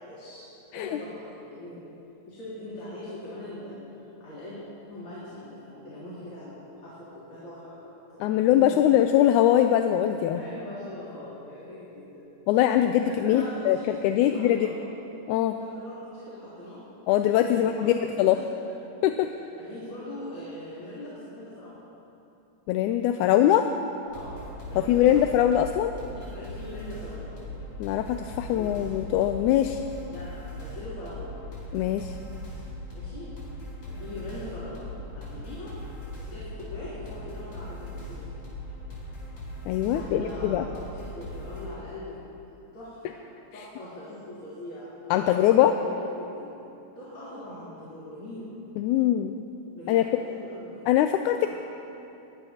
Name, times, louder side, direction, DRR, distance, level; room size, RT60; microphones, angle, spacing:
voice 1, 0.0-1.8 2.3-4.6 4.9-8.7 10.3-12.2 13.0-14.7 15.6-16.8 17.4-18.8 19.3-21.8 24.1-25.3 26.1-27.4 28.4-28.8 30.1-31.3 32.9-33.3 33.9-35.7 36.1-38.3 39.9-42.1 42.7-43.2 43.5-46.6 47.0-48.5 49.7-50.9 51.4-51.5, left 1 dB, 45° left, -11 dB, 4.3 m, -41 dB
voice 2, 8.2-10.4 12.5-14.7 15.3-15.6 17.1-18.4 19.0-19.3 22.7-23.7 24.8-25.9 27.8-29.8 31.7-32.1 39.7-40.7 45.1-45.7 48.8-49.3 49.9-50.0 50.9-51.5, left 11 dB, 85° left, 6 dB, 2.0 m, -22 dB
sound 1, 24.1-41.7, left 1 dB, 70° left, 6.2 m, -39 dB
21.5 x 19.5 x 2.8 m, 2.9 s
omnidirectional pair, 3.4 m